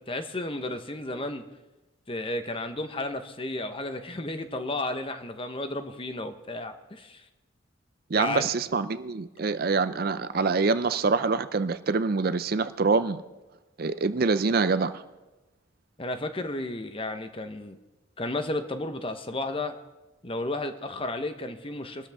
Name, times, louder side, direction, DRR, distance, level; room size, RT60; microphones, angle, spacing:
voice 1, 0.0-1.4 2.1-7.2 8.1-8.5 16.0-17.8 18.2-19.8 20.2-22.1, left 2 dB, 30° left, 8 dB, 1.0 m, -33 dB
voice 2, 8.1-13.2 13.8-14.9, right 4 dB, 50° right, 13 dB, 0.5 m, -25 dB
24.0 x 13.0 x 3.6 m, 1.1 s
head